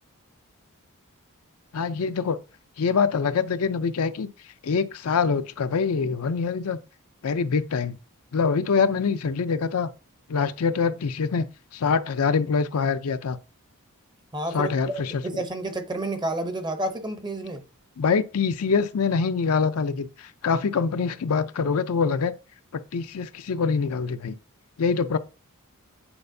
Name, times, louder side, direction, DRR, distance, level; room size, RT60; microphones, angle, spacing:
voice 1, 1.7-2.4 2.8-4.3 4.6-6.8 7.2-8.0 8.3-9.9 10.3-11.4 11.7-13.4 14.5-15.4 18.0-22.3 22.7-24.3 24.8-25.2, left 5 dB, 75° left, 0.5 m, -24 dB
voice 2, 14.3-17.6, right 1 dB, 20° right, 0.7 m, -30 dB
8.8 x 4.3 x 2.7 m
head